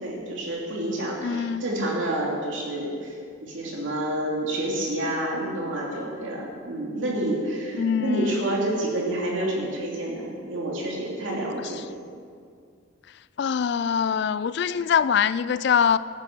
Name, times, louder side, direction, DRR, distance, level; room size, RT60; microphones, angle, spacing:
voice 1, 0.0-3.2 3.4-11.8, right 1 dB, 65° right, 2.8 m, -28 dB
voice 2, 1.2-1.6 7.8-8.4 13.4-16.0, left 7 dB, 55° left, 0.3 m, -23 dB
13.0 x 9.7 x 6.0 m
head